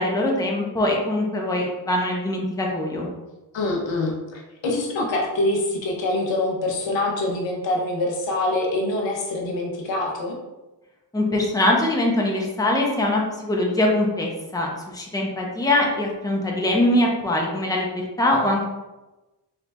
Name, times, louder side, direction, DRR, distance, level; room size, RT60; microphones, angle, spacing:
voice 1, 0.0-3.1 11.1-14.7 14.9-17.9 18.2-18.6, left 1 dB, 10° left, -1 dB, 0.9 m, -22 dB
voice 2, 3.5-10.4, left 2 dB, 80° left, 0 dB, 1.1 m, -25 dB
4.4 x 2.9 x 3.4 m, 1.1 s
cardioid pair, 90°, 44 cm